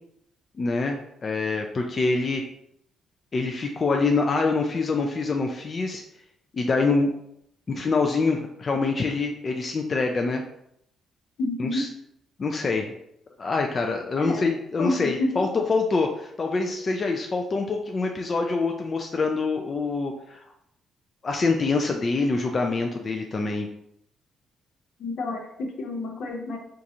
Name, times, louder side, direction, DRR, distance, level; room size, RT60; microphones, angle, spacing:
voice 1, 0.6-2.4 3.3-6.0 6.5-7.1 7.7-10.4 11.6-11.9 12.4-12.9 13.4-20.4 21.2-23.7, left 3 dB, 40° left, 2 dB, 0.4 m, -25 dB
voice 2, 11.4-11.8 14.2-14.5 14.8-15.4 25.0-26.6, left 2 dB, 70° left, 2 dB, 0.7 m, -29 dB
4.5 x 2.5 x 2.7 m, 0.74 s
cardioid pair, 90°, 0 cm